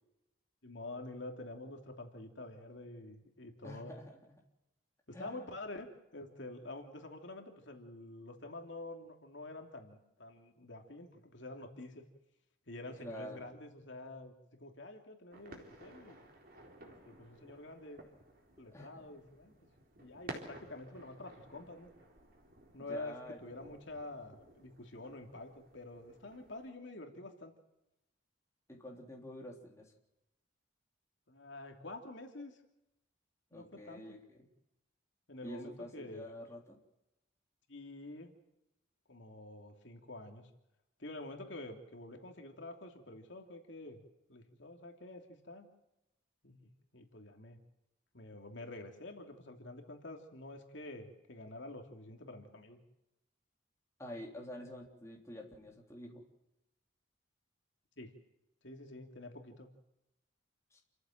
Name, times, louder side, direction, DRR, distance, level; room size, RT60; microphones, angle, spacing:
voice 1, 0.6-3.9 5.1-5.9 6.1-12.0 12.7-16.2 16.8-18.0 18.6-19.5 20.0-21.9 22.7-23.1 23.4-27.5 31.3-32.6 33.5-34.2 35.3-36.3 37.7-38.3 39.1-40.5 41.0-44.0 44.3-45.7 46.4-47.6 48.1-52.8 58.0-58.1 58.6-59.7, left 2 dB, 70° left, 4 dB, 2.9 m, -48 dB
voice 2, 3.6-4.2 5.1-5.5 13.0-13.4 18.7-19.1 22.8-23.4 28.7-29.9 33.5-34.4 35.4-36.8 54.0-56.2 60.7-60.8, left 1 dB, 15° left, 0 dB, 3.5 m, -47 dB
sound 1, 15.3-26.7, right 1 dB, 45° right, 4.1 m, -54 dB
29.0 x 14.5 x 7.5 m, 0.90 s
head